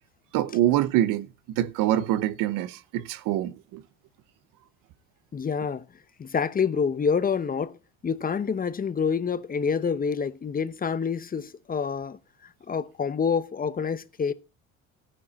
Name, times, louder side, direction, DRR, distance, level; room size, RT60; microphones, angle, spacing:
voice 1, 0.3-1.3 1.6-3.8, right 13 dB, 80° right, 0.8 m, -25 dB
voice 2, 5.3-5.9 6.2-7.8 8.0-12.2 12.7-14.3, left 6 dB, 25° left, 0.8 m, -27 dB
13.5 x 10.0 x 4.0 m
cardioid pair, 105°, 32 cm